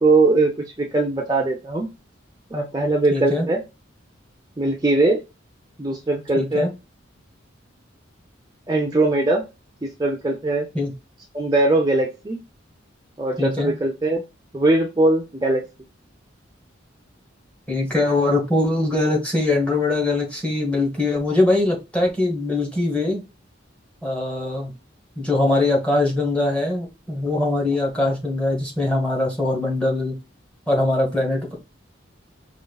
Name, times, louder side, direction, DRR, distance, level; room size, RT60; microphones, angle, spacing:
voice 1, 0.0-1.9 2.5-3.6 4.6-5.2 5.8-6.7 8.7-9.4 9.8-10.7 11.3-12.4 13.2-14.2 14.5-15.6 28.0-28.1, right 2 dB, 20° right, 0 dB, 0.5 m, -20 dB
voice 2, 3.1-3.5 6.4-6.7 10.7-10.9 13.4-13.7 17.7-23.2 24.0-24.7 25.2-30.1 30.7-31.5, left 2 dB, 5° left, -1 dB, 1.1 m, -22 dB
5.2 x 3.1 x 2.3 m, 0.26 s
head